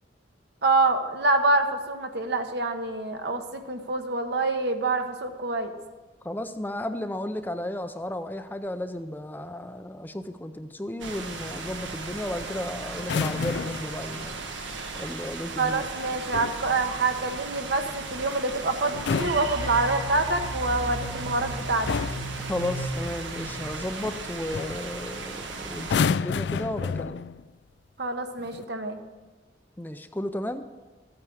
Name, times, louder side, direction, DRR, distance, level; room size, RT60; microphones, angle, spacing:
voice 1, 0.6-5.7 15.6-21.9 28.0-29.0, right 3 dB, 60° right, 6 dB, 1.2 m, -26 dB
voice 2, 6.2-14.4 14.9-15.8 22.5-27.2 29.8-30.6, left 1 dB, 10° left, 8 dB, 0.5 m, -33 dB
sound 1, 11.0-26.0, right 3 dB, 90° right, 1.4 m, -37 dB
sound 2, 13.0-14.0 16.1-16.7 18.8-20.2 21.2-21.5 21.9-22.4 24.0-24.2 24.5-24.8 25.8-27.5 28.4-28.6, left 5 dB, 65° left, 0.3 m, -30 dB
sound 3, 19.1-24.2, equal, 20° right, 1.2 m, -35 dB
14.0 x 8.9 x 6.3 m, 1.3 s
head